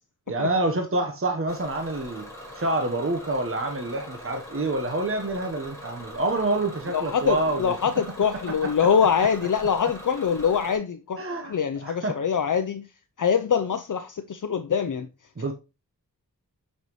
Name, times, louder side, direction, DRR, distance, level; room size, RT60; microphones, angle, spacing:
voice 1, 0.3-2.3 2.5-8.0 8.3-8.9 11.2-12.2 15.4-15.5, right 2 dB, 35° right, 1.1 m, -27 dB
Bus / Engine, 1.5-10.8, equal, 10° left, 4.4 m, -42 dB
voice 2, 6.9-11.2 11.5-12.9 13.2-15.1, left 7 dB, 60° left, 0.6 m, -24 dB
8.2 x 5.6 x 3.1 m
wide cardioid pair, 80°, 35 cm